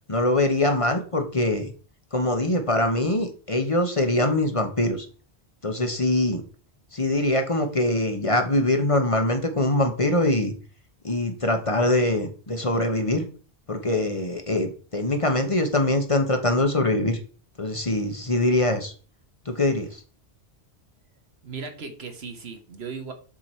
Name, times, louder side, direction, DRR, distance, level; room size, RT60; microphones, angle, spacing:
voice 1, 0.1-1.7 2.1-5.1 5.6-6.4 6.9-10.5 11.0-13.2 13.7-17.2 17.6-18.9 19.5-20.0, left 1 dB, 30° left, 6 dB, 1.1 m, -23 dB
voice 2, 21.4-23.1, right 5 dB, 75° right, 6 dB, 1.5 m, -36 dB
7.4 x 5.9 x 4.4 m, 0.39 s
omnidirectional pair, 1.1 m